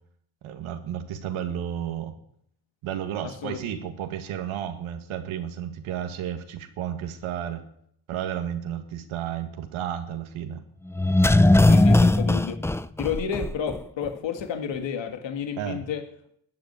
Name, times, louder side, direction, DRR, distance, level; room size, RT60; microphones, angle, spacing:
voice 1, 0.4-2.1 2.8-7.6 8.1-10.6 15.6-15.9, right 9 dB, 85° right, 7 dB, 1.8 m, -32 dB
voice 2, 3.2-3.6 11.5-12.6 13.0-16.0, left 7 dB, 65° left, 6 dB, 2.0 m, -31 dB
sound 1, 10.9-13.8 14.1-14.2, left 2 dB, 5° left, 0.5 m, -18 dB
13.5 x 8.1 x 9.3 m, 0.69 s
supercardioid pair, 70°, 47 cm